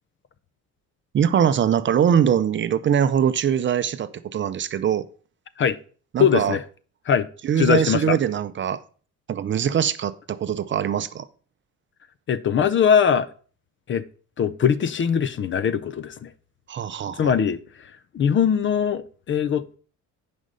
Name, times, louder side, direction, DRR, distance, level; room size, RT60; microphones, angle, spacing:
voice 1, 1.1-5.0 6.1-6.6 7.4-8.8 9.3-11.3 16.7-17.4, right 8 dB, 35° right, 0.6 m, -22 dB
voice 2, 6.2-6.6 7.1-7.3 7.6-8.2 12.3-13.3 13.9-14.0 14.4-16.3 17.2-19.8, left 7 dB, 40° left, 0.5 m, -21 dB
10.0 x 5.3 x 5.3 m
cardioid pair, 140°, 32 cm